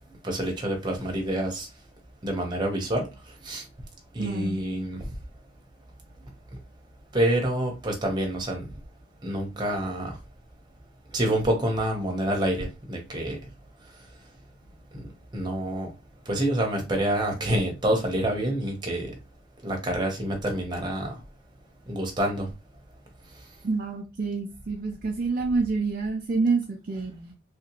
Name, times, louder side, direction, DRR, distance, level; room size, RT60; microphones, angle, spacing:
voice 1, 0.2-1.7 2.2-3.1 3.4-3.6 4.1-5.0 7.1-8.6 9.2-10.2 11.1-13.4 14.9-15.1 15.3-15.9 16.3-19.2 19.6-21.1 21.9-22.5, right 1 dB, 20° right, 0.9 m, -27 dB
voice 2, 4.2-4.6 23.6-27.3, right 4 dB, 45° right, 0.4 m, -27 dB
3.1 x 2.9 x 2.9 m
head